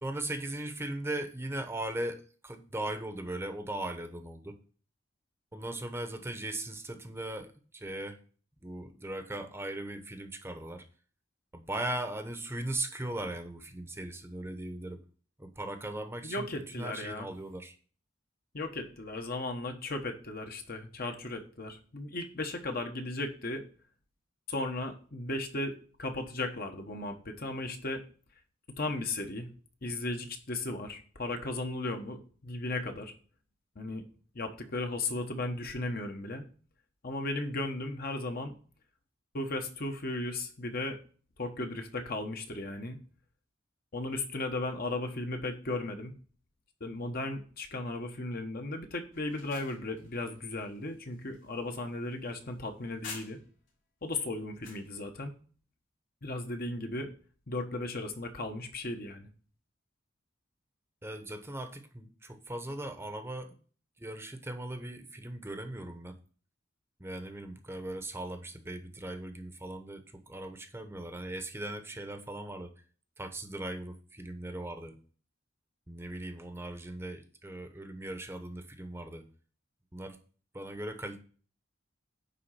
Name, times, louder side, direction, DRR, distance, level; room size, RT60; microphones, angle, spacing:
voice 1, 0.0-4.6 5.5-8.2 8.6-10.8 11.5-15.0 15.4-16.5 16.8-17.7 61.0-63.5 64.0-66.2 67.0-72.7 73.2-75.0 75.9-79.2 79.9-80.2 80.5-81.2, right 1 dB, 15° right, 6 dB, 0.9 m, -38 dB
voice 2, 16.2-17.3 18.5-23.6 24.5-28.0 28.8-29.5 29.8-33.1 33.7-34.0 34.3-36.4 37.0-38.5 39.3-41.0 41.4-43.0 43.9-46.1 46.8-53.4 54.0-55.3 56.2-57.1 57.5-59.3, left 2 dB, 50° left, 5 dB, 1.2 m, -36 dB
sound 1, 49.1-53.7 54.1-54.9, left 4 dB, 75° left, 3.6 m, -50 dB
9.7 x 3.8 x 5.7 m, 0.41 s
head